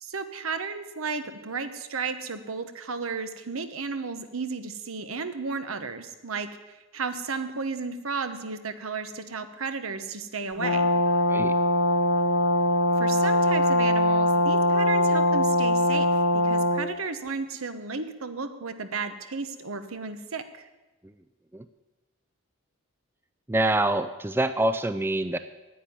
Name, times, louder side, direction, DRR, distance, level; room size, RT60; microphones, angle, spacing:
voice 1, 0.0-10.9 13.0-16.1 16.3-20.7, right 4 dB, 80° right, 10 dB, 1.1 m, -33 dB
Brass instrument, 10.6-16.9, left 1 dB, 70° left, 1.0 m, -22 dB
voice 2, 23.5-25.4, right 1 dB, 10° right, 11 dB, 0.4 m, -26 dB
10.0 x 9.0 x 10.0 m, 1.1 s
head